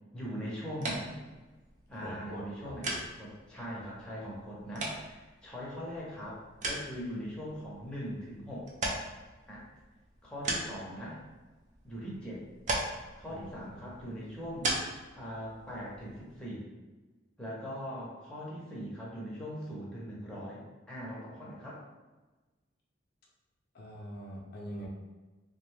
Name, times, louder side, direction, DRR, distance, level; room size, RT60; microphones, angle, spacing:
voice 1, 0.1-1.2 1.9-2.9 3.2-8.7 9.5-9.7 10.2-11.2 11.8-12.4 13.2-14.7 15.1-16.7 17.4-20.6 20.9-21.8, equal, 5° left, -6 dB, 0.6 m, -41 dB
sound 1, 0.7-16.4, right 2 dB, 35° right, 0.4 m, -40 dB
voice 2, 2.0-3.0 13.3-13.9 23.7-24.9, equal, 50° left, -3 dB, 0.4 m, -44 dB
2.5 x 2.2 x 3.1 m, 1.2 s
head